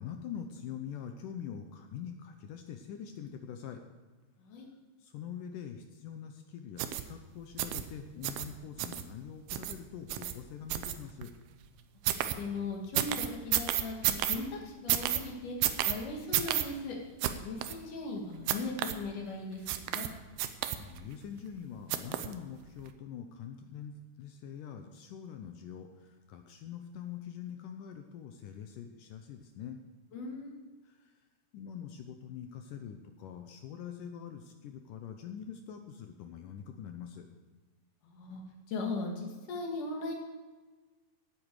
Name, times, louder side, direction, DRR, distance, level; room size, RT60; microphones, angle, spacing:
voice 1, 0.0-3.8 5.0-11.3 20.8-29.8 30.8-31.1 31.5-37.3, left 8 dB, 80° left, 5 dB, 2.0 m, -44 dB
sound 1, 6.8-7.0 7.6-7.8 8.2-8.5 8.8-9.0 9.5-9.7 10.1-10.3 10.7-11.3 12.0-12.3 12.9-14.4 14.9-15.2 15.6-15.9 16.3-16.6 17.2-17.3 17.6-17.7 18.5-18.9 19.7-20.1 20.4-21.0 21.9-22.3 22.8-22.9, right 13 dB, 80° right, 2.6 m, -30 dB
voice 2, 12.4-17.0 17.4-20.1 30.1-30.6 38.0-38.4 38.7-40.1, left 3 dB, 55° left, 0 dB, 3.4 m, -38 dB
17.5 x 8.9 x 4.8 m, 1.3 s
omnidirectional pair, 4.7 m